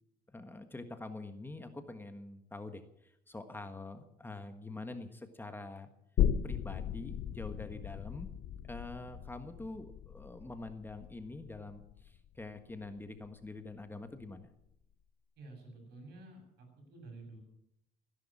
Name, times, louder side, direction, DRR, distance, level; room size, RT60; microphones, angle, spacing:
voice 1, 0.3-5.9 6.4-8.3 8.6-14.5, left 2 dB, 10° left, 7 dB, 1.5 m, -45 dB
sound 1, 6.2-13.5 13.8-13.9, left 9 dB, 70° left, 0.9 m, -37 dB
voice 2, 15.4-17.4, right 2 dB, 75° right, 3 dB, 7.6 m, -51 dB
16.5 x 11.0 x 7.4 m, 0.80 s
cardioid pair, 110°, 17 cm